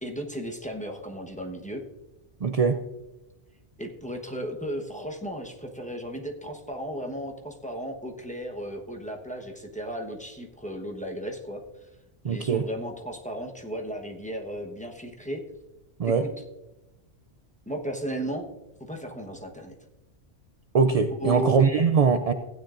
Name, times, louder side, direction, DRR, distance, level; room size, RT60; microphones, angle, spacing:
voice 1, 0.0-1.8 3.8-11.6 12.2-15.4 16.0-16.3 17.7-18.5 18.8-19.7 21.2-21.6, equal, 5° left, 1 dB, 1.0 m, -35 dB
voice 2, 2.4-2.8 12.2-12.7 16.0-16.3 20.7-22.3, right 5 dB, 60° right, 8 dB, 0.3 m, -22 dB
15.5 x 9.4 x 2.5 m, 1.0 s
omnidirectional pair, 1.2 m